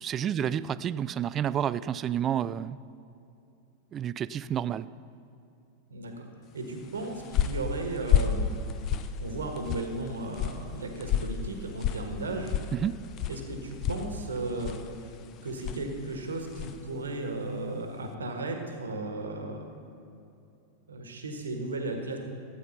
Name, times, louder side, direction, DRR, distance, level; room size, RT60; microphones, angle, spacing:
voice 1, 0.0-2.8 3.9-4.9 12.7-12.9, right 9 dB, 25° right, 17 dB, 0.3 m, -30 dB
voice 2, 5.9-6.3 6.5-8.5 9.2-12.6 13.3-15.2 15.4-19.7 20.9-22.2, right 2 dB, 70° right, 4 dB, 1.5 m, -35 dB
sound 1, 6.8-16.9, left 8 dB, 35° left, 0.6 m, -32 dB
13.0 x 8.5 x 5.7 m, 2.7 s
figure-of-eight pair, 90°, 0 cm